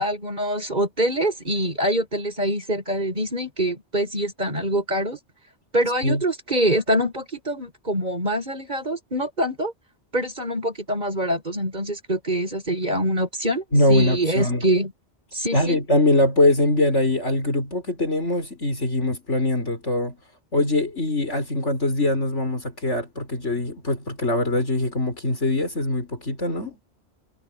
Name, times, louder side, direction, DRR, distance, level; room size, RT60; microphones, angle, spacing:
voice 1, 0.0-5.2 5.7-9.7 10.1-14.9 15.3-15.8, right 1 dB, 40° right, 6.4 m, -25 dB
voice 2, 13.7-14.6 15.5-20.2 20.5-26.8, left 1 dB, 90° left, 6.1 m, -22 dB
omnidirectional pair, 1.2 m